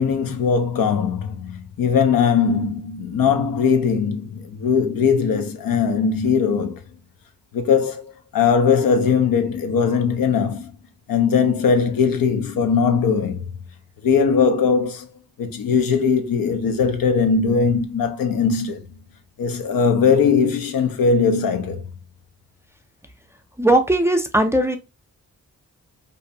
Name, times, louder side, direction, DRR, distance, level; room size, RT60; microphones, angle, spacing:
voice 1, 0.0-6.8 7.5-10.7 11.1-13.5 14.0-15.1 15.4-18.9 19.4-21.8, left 6 dB, 80° left, 0.6 m, -20 dB
voice 2, 23.6-24.8, right 1 dB, 10° right, 0.4 m, -18 dB
2.6 x 2.2 x 2.6 m
cardioid pair, 55°, 34 cm